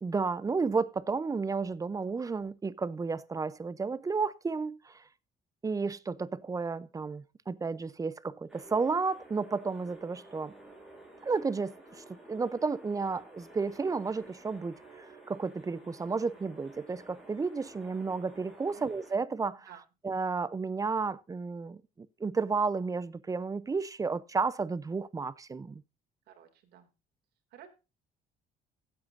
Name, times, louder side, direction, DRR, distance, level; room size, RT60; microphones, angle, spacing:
voice 1, 0.0-4.9 5.6-10.5 11.2-19.7 20.0-21.8 22.2-25.8, right 4 dB, 20° right, 0.5 m, -32 dB
sound 1, 8.5-19.2, right 1 dB, 5° right, 4.7 m, -53 dB
voice 2, 26.3-26.9 27.5-27.7, right 10 dB, 75° right, 2.5 m, -53 dB
16.5 x 7.8 x 2.6 m
cardioid pair, 110°, 17 cm